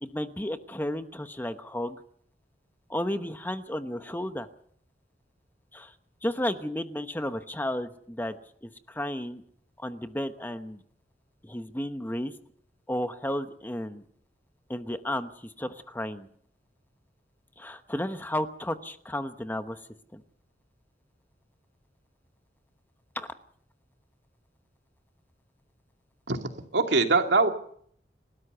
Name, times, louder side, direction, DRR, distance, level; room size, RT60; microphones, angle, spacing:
voice 1, 0.0-2.0 2.9-4.5 5.7-5.9 6.2-8.4 8.6-9.4 9.8-10.8 11.4-12.3 12.9-14.0 14.7-16.3 17.6-19.8 20.1-20.2 23.2-23.3, left 1 dB, 10° left, 9 dB, 1.0 m, -33 dB
voice 2, 26.3-27.5, right 3 dB, 85° right, 5 dB, 2.5 m, -23 dB
30.0 x 13.0 x 6.9 m, 0.63 s
head